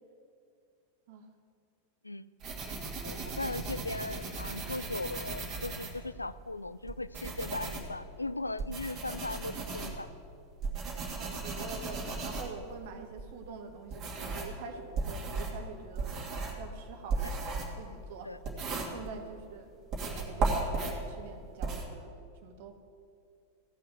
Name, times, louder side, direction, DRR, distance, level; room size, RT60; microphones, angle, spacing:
sound 1, 2.4-6.4 6.9-14.6 14.9-19.4 19.9-21.9, right 3 dB, 30° right, 2.7 m, -36 dB
voice 1, 3.0-10.1 18.2-18.4, left 2 dB, 80° left, 15 dB, 0.3 m, -38 dB
voice 2, 11.2-16.1 16.6-17.4 17.8-18.3 18.9-19.7 20.3-22.1 22.4-22.8, right 5 dB, 50° right, 6 dB, 1.4 m, -45 dB
16.5 x 5.6 x 8.1 m, 2.4 s
figure-of-eight pair, 90°, 0 cm